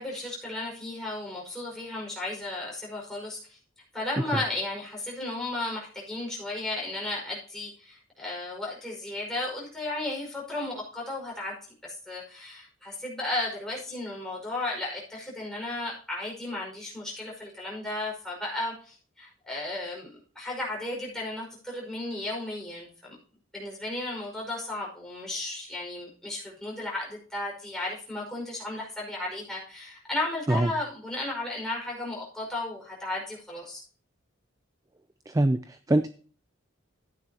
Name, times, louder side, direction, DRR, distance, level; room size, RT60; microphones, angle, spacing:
voice 1, 0.0-3.6 3.9-11.6 11.8-23.2 23.5-33.8, left 2 dB, 5° left, -4 dB, 5.2 m, -34 dB
voice 2, 35.3-36.1, right 1 dB, 15° right, 11 dB, 0.4 m, -24 dB
14.0 x 9.8 x 2.9 m, 0.41 s
head